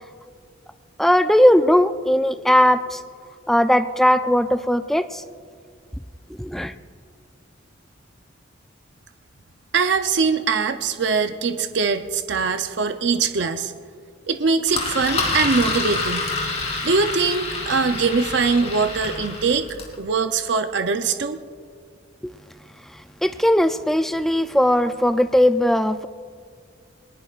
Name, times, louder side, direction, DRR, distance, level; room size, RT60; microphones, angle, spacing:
voice 1, 1.0-3.0 3.5-5.2 6.4-6.7 22.2-22.3 23.2-26.1, equal, ahead, 10 dB, 0.3 m, -18 dB
voice 2, 9.7-13.7 14.3-16.3 16.8-21.4, right 4 dB, 65° right, 8 dB, 0.6 m, -22 dB
Engine, 14.7-20.0, left 3 dB, 30° left, 2.9 m, -27 dB
20.5 x 20.5 x 2.4 m, 2.1 s
head